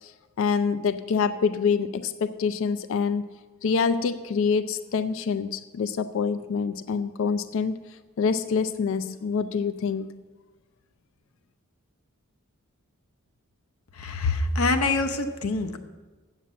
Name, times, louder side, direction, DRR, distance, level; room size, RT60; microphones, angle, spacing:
voice 1, 0.4-3.3 3.6-7.8 8.2-10.2, left 5 dB, 65° left, 12 dB, 0.4 m, -26 dB
voice 2, 13.9-15.8, left 3 dB, 85° left, 7 dB, 0.8 m, -25 dB
8.3 x 7.3 x 7.4 m, 1.3 s
head